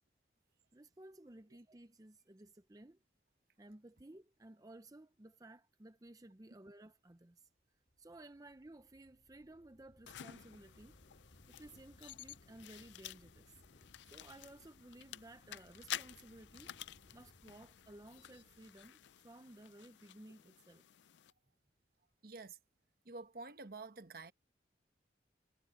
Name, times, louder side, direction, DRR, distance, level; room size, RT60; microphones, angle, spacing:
voice 1, 0.7-3.0 3.6-7.5 8.0-11.0 11.5-13.6 14.0-16.8 17.1-20.9, right 1 dB, 20° right, 0.6 m, -56 dB
sound 1, 7.9-19.9, equal, 50° left, 4.4 m, -66 dB
sound 2, 10.1-21.3, left 11 dB, 85° left, 0.4 m, -51 dB
voice 2, 22.2-22.6 23.0-24.3, right 3 dB, 55° right, 1.1 m, -49 dB
head